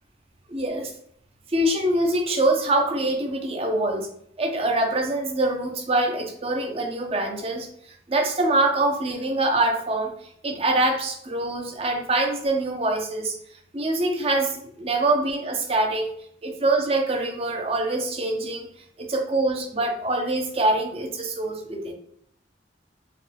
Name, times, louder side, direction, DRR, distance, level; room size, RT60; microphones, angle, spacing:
voice 1, 0.5-0.9 1.5-4.1 4.4-7.7 8.1-10.1 10.4-13.3 13.7-16.1 16.4-18.7 19.0-21.9, right 2 dB, 30° right, 3 dB, 0.6 m, -24 dB
4.9 x 2.3 x 3.4 m, 0.69 s
head